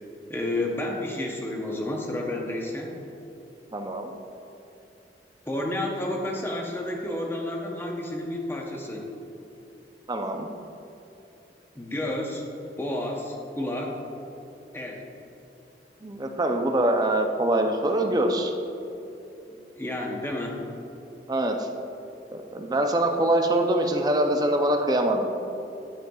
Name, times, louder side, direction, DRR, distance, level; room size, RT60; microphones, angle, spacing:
voice 1, 0.3-2.9 5.5-9.1 11.7-12.4 12.8-14.0 14.7-15.0 19.5-20.6, left 1 dB, 15° left, 0 dB, 0.7 m, -31 dB
voice 2, 3.7-4.1 10.1-10.5 16.0-18.5 21.3-21.7 22.3-25.3, right 1 dB, 25° right, 4 dB, 0.5 m, -24 dB
8.9 x 7.6 x 2.3 m, 2.9 s
head